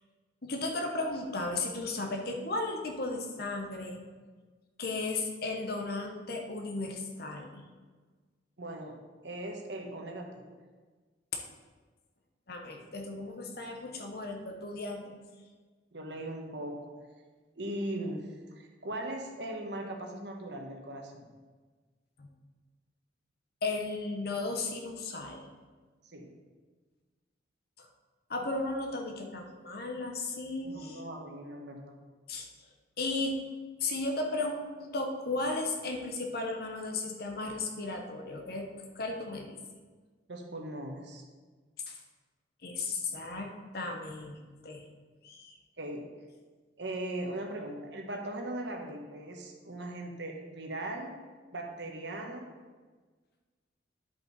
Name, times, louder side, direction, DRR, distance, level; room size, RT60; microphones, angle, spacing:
voice 1, 0.4-4.0 4.8-7.6 11.3-11.4 12.5-15.2 22.2-22.3 23.6-25.5 27.8-27.9 28.3-31.0 32.3-32.5 33.0-33.4 33.8-38.7 38.9-39.6 41.9-42.0 42.6-44.8 45.2-45.5, left 2 dB, 55° left, 3 dB, 1.0 m, -35 dB
voice 2, 8.6-9.0 9.2-10.6 15.9-16.9 17.6-21.3 26.1-26.3 30.6-32.0 40.3-41.2 45.8-46.1 46.8-51.1 51.5-52.4, right 1 dB, 70° right, 1 dB, 1.2 m, -39 dB
10.5 x 5.2 x 4.1 m, 1.4 s
head